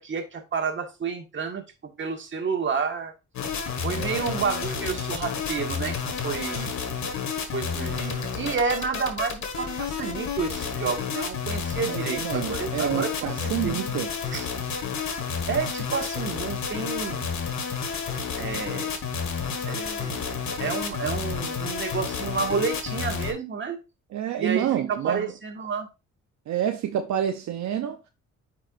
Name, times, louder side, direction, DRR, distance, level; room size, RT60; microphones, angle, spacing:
voice 1, 0.0-3.1 3.8-6.0 6.2-6.7 7.3-13.7 14.3-14.5 15.5-17.2 18.4-18.9 19.6-23.8 24.4-25.9, right 5 dB, 40° right, 1.6 m, -30 dB
sound 1, 3.3-23.3, left 6 dB, 70° left, 1.6 m, -30 dB
voice 2, 4.0-4.4 11.9-14.1 24.1-25.3 26.5-28.1, right 10 dB, 70° right, 0.7 m, -28 dB
8.9 x 4.7 x 2.5 m
cardioid pair, 90°, 30 cm